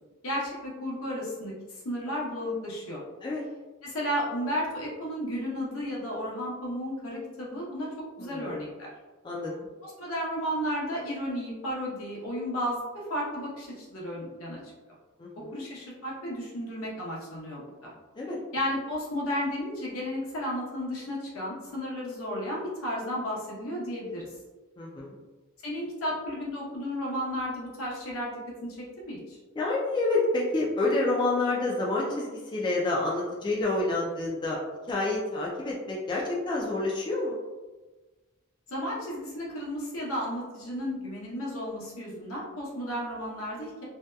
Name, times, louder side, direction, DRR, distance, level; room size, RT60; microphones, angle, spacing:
voice 1, 0.2-1.5 1.8-3.0 3.8-7.9 8.2-8.7 9.8-14.6 15.5-17.9 18.5-24.3 25.6-28.3 28.6-28.8 29.0-29.4 38.7-43.8, equal, 75° left, -5 dB, 0.8 m, -33 dB
voice 2, 8.2-8.6 9.2-9.5 15.2-15.6 18.2-18.4 24.8-25.1 29.6-34.6 34.9-37.4, left 2 dB, 20° left, -4 dB, 0.3 m, -28 dB
2.7 x 2.2 x 2.2 m, 1.2 s
head